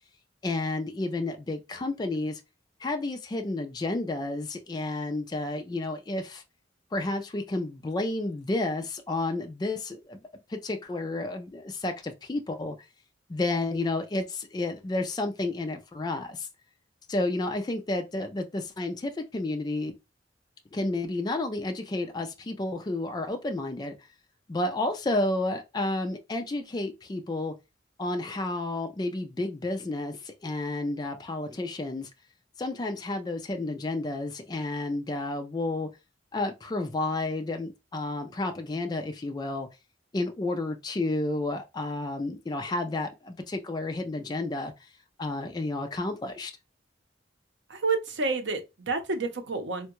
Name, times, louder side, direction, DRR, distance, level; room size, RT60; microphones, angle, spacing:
voice 1, 0.4-2.4 2.8-6.4 6.9-10.2 10.5-12.8 13.3-16.5 17.1-19.9 20.7-23.9 24.5-27.5 28.0-32.1 32.6-35.9 36.3-39.7 40.1-44.7 45.2-46.5, left 2 dB, 20° left, 0.4 m, -31 dB
voice 2, 47.7-49.9, right 4 dB, 70° right, 0.7 m, -29 dB
3.5 x 2.2 x 3.0 m
head